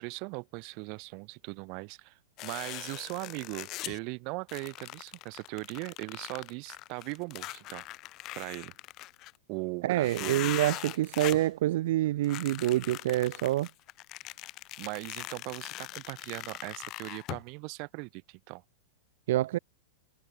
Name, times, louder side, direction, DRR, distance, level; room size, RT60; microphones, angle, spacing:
voice 1, 0.0-7.9 8.3-8.7 9.5-10.5 14.8-18.6, right 33 dB, 45° right, 1.0 m, -39 dB
sound 1, 2.4-4.0 4.5-9.4 10.0-11.5 12.2-17.4, left 18 dB, 40° left, 0.8 m, -41 dB
voice 2, 9.8-13.7 19.3-19.6, right 15 dB, 65° right, 0.3 m, -27 dB
hypercardioid pair, 135°, 0 cm